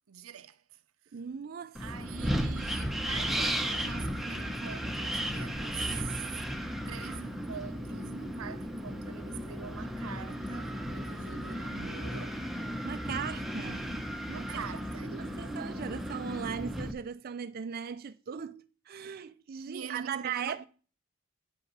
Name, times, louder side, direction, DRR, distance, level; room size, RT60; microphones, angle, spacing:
voice 1, 0.1-0.6 1.8-6.2 6.9-12.4 14.3-15.4 19.7-20.7, right 7 dB, 90° right, 0.6 m, -44 dB
voice 2, 1.1-1.8 12.8-14.0 14.3-14.6 15.1-20.7, right 7 dB, 45° right, 0.4 m, -38 dB
Wind, 1.7-16.9, equal, ahead, 0.8 m, -35 dB
9.0 x 5.8 x 5.5 m
head